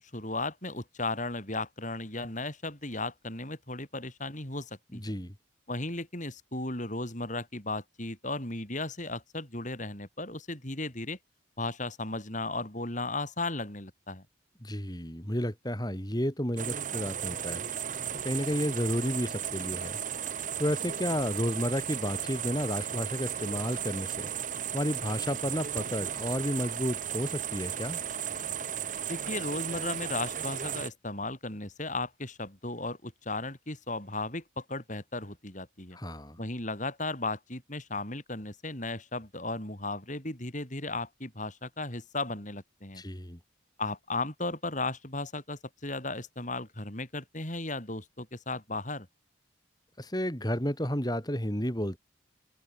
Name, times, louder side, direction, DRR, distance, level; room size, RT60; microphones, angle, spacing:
voice 1, 0.0-5.1 5.7-11.2 11.6-14.2 29.1-36.0 36.4-43.0 43.8-49.1, left 2 dB, 40° left, 6.4 m, -35 dB
voice 2, 4.9-5.3 14.6-17.6 18.2-20.0 20.6-24.3 24.7-28.0 35.9-36.4 42.9-43.4 50.0-52.0, equal, 20° left, 5.8 m, -32 dB
sound 1, 16.6-30.9, right 9 dB, 40° right, 1.1 m, -35 dB
head